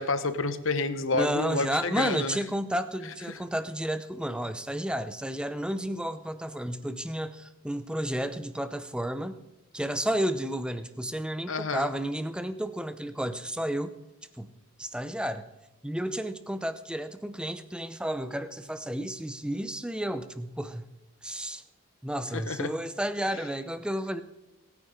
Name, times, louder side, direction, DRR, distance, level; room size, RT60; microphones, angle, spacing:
voice 1, 0.0-2.4 3.3-3.4 11.5-11.9 22.3-22.7, left 3 dB, 60° left, 11 dB, 0.9 m, -29 dB
voice 2, 1.1-9.4 9.7-13.9 14.4-14.5 14.8-15.5 15.8-20.8 21.2-21.6 22.0-24.2, right 1 dB, 5° right, 11 dB, 0.6 m, -32 dB
28.0 x 9.6 x 3.8 m, 1.0 s
head